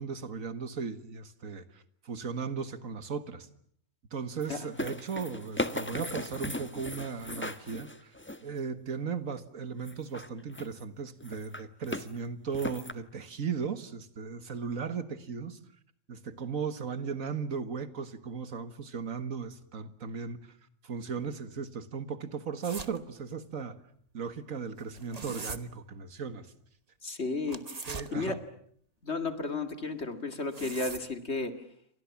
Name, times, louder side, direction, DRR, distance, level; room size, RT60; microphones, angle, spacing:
voice 1, 0.0-3.5 4.1-8.1 8.4-15.6 16.1-20.4 20.8-23.8 24.1-26.5 27.9-28.4, right 6 dB, 85° right, 12 dB, 2.0 m, -37 dB
sound 1, 4.4-8.6 9.8-10.8 11.2-12.1 12.5-12.9, left 1 dB, 10° left, 1.1 m, -37 dB
sound 2, 22.6-23.0 24.8-25.6 27.5-28.1 30.3-31.1, right 4 dB, 30° right, 1.3 m, -40 dB
voice 2, 27.0-28.4 29.0-31.6, left 3 dB, 55° left, 8 dB, 2.5 m, -34 dB
29.5 x 25.0 x 7.3 m, 0.63 s
omnidirectional pair, 1.4 m